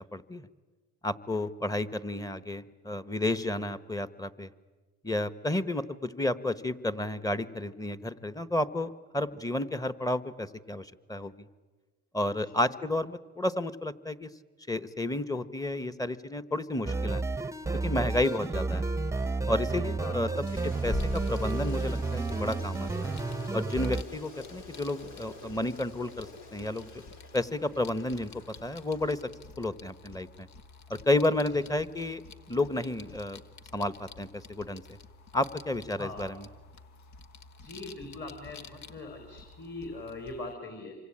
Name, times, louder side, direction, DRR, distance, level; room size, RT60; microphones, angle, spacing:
voice 1, 0.1-0.5 1.0-4.5 5.0-11.5 12.1-14.3 14.7-17.2 17.8-18.9 19.5-23.1 23.5-27.0 27.3-28.3 28.6-29.2 29.6-30.5 30.9-32.2 32.5-33.4 33.7-34.8 35.3-36.5, left 1 dB, 10° left, 14 dB, 1.3 m, -31 dB
sound 1, 16.9-24.0, right 3 dB, 10° right, 0.9 m, -31 dB
Toilet flush, 20.2-29.6, left 3 dB, 85° left, 4.4 m, -49 dB
sound 2, 20.9-40.5, left 3 dB, 65° left, 1.4 m, -47 dB
voice 2, 37.6-41.0, left 2 dB, 35° left, 3 dB, 5.0 m, -41 dB
27.5 x 25.0 x 8.8 m, 1.3 s
cardioid pair, 90°, 30 cm